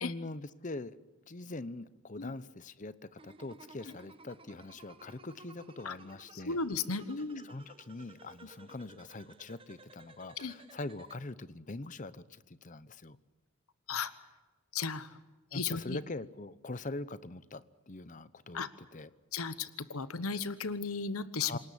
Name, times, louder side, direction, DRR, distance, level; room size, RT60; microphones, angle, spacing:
voice 1, 0.0-1.0 1.3-6.6 7.4-13.2 15.5-19.1 21.4-21.6, left 2 dB, 35° left, 16 dB, 0.8 m, -43 dB
sound 1, 3.2-11.2, right 3 dB, 25° right, 1.1 m, -56 dB
voice 2, 6.3-7.5 10.4-10.5 13.9-14.1 14.7-15.2 15.5-16.0 18.5-18.7 19.3-21.6, left 5 dB, 75° left, 14 dB, 1.1 m, -35 dB
27.5 x 18.5 x 9.9 m, 1.2 s
head